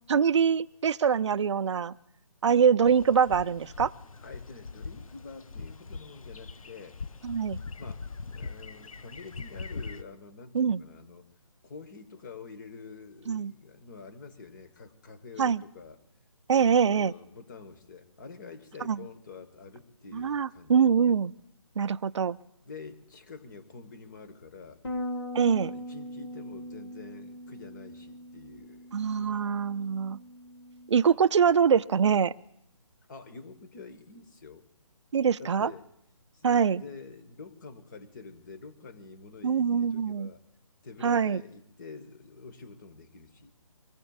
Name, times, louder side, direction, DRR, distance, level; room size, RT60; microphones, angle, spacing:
voice 1, 0.1-1.9 2.4-3.9 7.2-7.6 10.5-10.8 13.3-13.5 15.4-15.6 16.5-17.1 18.9-19.0 20.1-21.3 21.8-22.4 25.3-25.7 28.9-30.2 30.9-32.3 35.1-35.7 36.4-36.8 39.4-40.3 41.0-41.4, right 7 dB, 60° right, 15 dB, 0.5 m, -24 dB
sound 1, 2.8-10.0, left 4 dB, 85° left, 0.6 m, -42 dB
voice 2, 4.2-7.0 7.8-11.3 11.6-16.0 16.6-20.9 22.6-24.8 25.3-28.9 29.2-29.6 33.1-34.7 35.4-35.9 36.3-40.4 40.8-43.5, left 4 dB, 35° left, 9 dB, 1.3 m, -47 dB
Bass guitar, 24.8-31.1, left 1 dB, 55° left, 1.7 m, -40 dB
25.0 x 19.0 x 2.4 m, 0.75 s
figure-of-eight pair, 155°, 17 cm